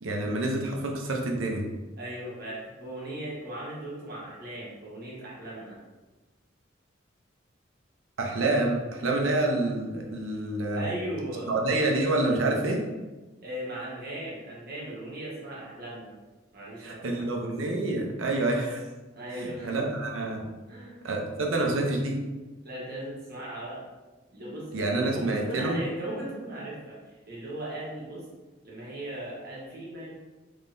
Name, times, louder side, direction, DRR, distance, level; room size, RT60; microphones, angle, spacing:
voice 1, 0.0-1.7 8.2-10.9 11.5-12.8 16.8-18.8 19.3-20.4 21.0-22.2 24.7-25.8, right 2 dB, 90° right, 1 dB, 0.7 m, -27 dB
voice 2, 2.0-5.8 10.7-11.5 13.4-16.1 16.5-17.4 19.1-19.9 20.7-21.0 22.6-23.8 24.3-27.0 27.3-28.2 28.6-30.1, right 1 dB, 55° right, -6 dB, 1.2 m, -37 dB
3.6 x 3.1 x 2.6 m, 1.2 s
head